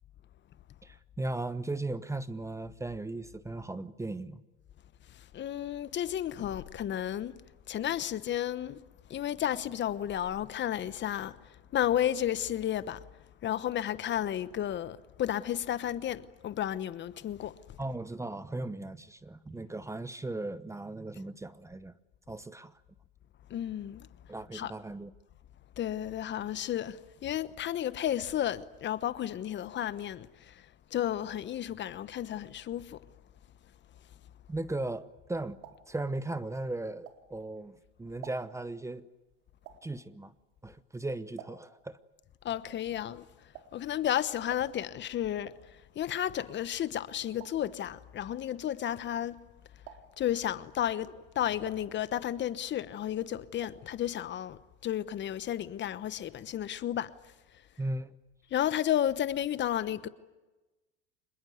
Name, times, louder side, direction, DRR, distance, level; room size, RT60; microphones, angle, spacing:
voice 1, 0.8-4.4 17.8-21.9 22.3-22.8 24.3-25.1 34.5-35.6 35.9-39.1 39.8-40.3 40.6-42.0 57.8-58.1, right 2 dB, 10° right, 0.9 m, -37 dB
voice 2, 5.1-7.3 7.7-8.8 9.1-13.1 13.4-17.5 23.5-24.1 24.5-24.7 25.8-33.0 42.4-43.3 43.7-49.4 50.2-57.1 58.5-60.1, left 11 dB, 35° left, 1.1 m, -32 dB
sound 1, 35.1-37.6 38.0-41.9 42.2-49.5 49.8-50.4 50.8-52.6 52.8-53.9 54.2-54.3 54.5-54.6, right 10 dB, 65° right, 3.9 m, -53 dB
26.5 x 21.0 x 9.4 m
hypercardioid pair, 95°, 30 cm